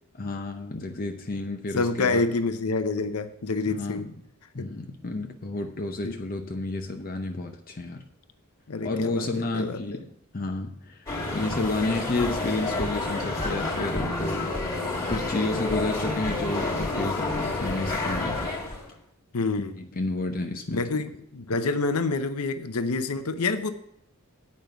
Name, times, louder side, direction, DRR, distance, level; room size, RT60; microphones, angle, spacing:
voice 1, 0.1-2.3 3.7-4.2 4.5-8.0 8.8-10.1 10.3-18.4 19.8-20.9, left 2 dB, 40° left, 4 dB, 0.7 m, -31 dB
voice 2, 1.8-4.1 6.0-6.2 8.7-9.3 9.5-10.0 19.3-19.8 20.7-23.7, left 3 dB, 75° left, 9 dB, 0.7 m, -27 dB
sound 1, 11.1-18.9, left 2 dB, 15° left, 1.8 m, -29 dB
9.1 x 5.4 x 7.8 m, 0.77 s
head